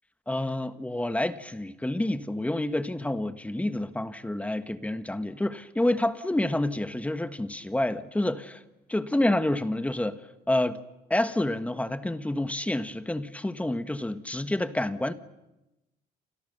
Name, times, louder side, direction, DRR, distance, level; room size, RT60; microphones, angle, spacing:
voice 1, 0.3-8.6 8.9-10.2 10.5-10.8 11.1-15.1, left 1 dB, 10° left, 1.4 m, -28 dB
29.5 x 25.5 x 6.7 m
cardioid pair, 110°, 17 cm